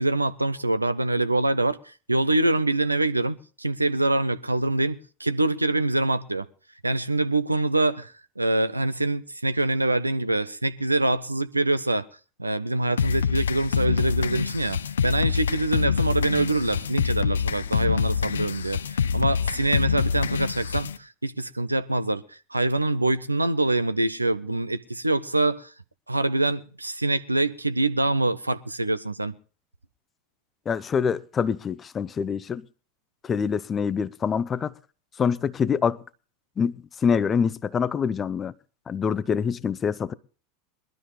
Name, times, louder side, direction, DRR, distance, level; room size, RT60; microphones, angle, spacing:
voice 1, 0.0-6.5 6.8-12.1 12.4-22.2 22.5-25.7 26.1-29.4, right 2 dB, 85° right, 0.7 m, -25 dB
sound 1, 13.0-21.0, left 7 dB, 70° left, 0.6 m, -26 dB
voice 2, 30.7-32.6 33.2-34.7 35.2-36.0 36.6-38.5 38.9-40.1, left 6 dB, 25° left, 0.7 m, -25 dB
21.5 x 12.5 x 3.3 m
figure-of-eight pair, 80°, 0 cm